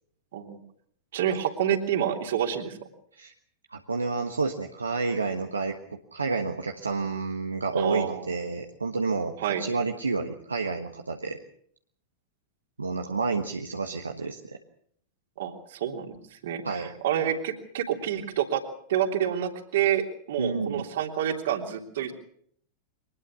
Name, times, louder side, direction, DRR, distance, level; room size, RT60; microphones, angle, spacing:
voice 1, 1.1-2.8 7.7-8.2 9.4-9.6 15.4-18.6 18.9-22.1, right 10 dB, 60° right, 4 dB, 3.2 m, -28 dB
voice 2, 3.7-11.4 12.8-14.6 16.6-16.9 17.3-17.4 20.4-20.9, right 4 dB, 75° right, 4 dB, 1.4 m, -30 dB
23.5 x 20.0 x 6.2 m, 0.64 s
figure-of-eight pair, 90°, 0 cm